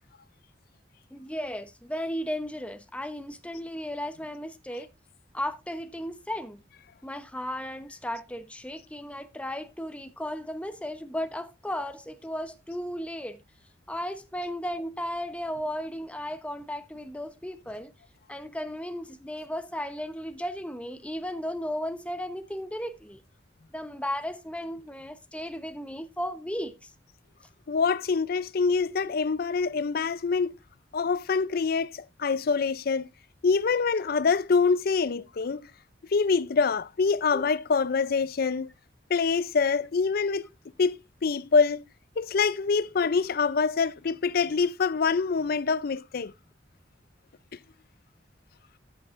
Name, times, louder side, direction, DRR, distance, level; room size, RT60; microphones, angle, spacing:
voice 1, 1.1-4.9 5.3-6.6 7.0-13.4 13.9-17.9 18.3-23.2 23.7-26.8 28.9-29.1 37.3-37.4, equal, 5° left, 0.9 m, -35 dB
voice 2, 27.7-30.5 30.9-33.1 33.4-35.6 36.1-38.7 39.1-40.5 40.8-41.8 42.2-46.3, left 5 dB, 60° left, 0.5 m, -25 dB
13.5 x 7.7 x 2.5 m
head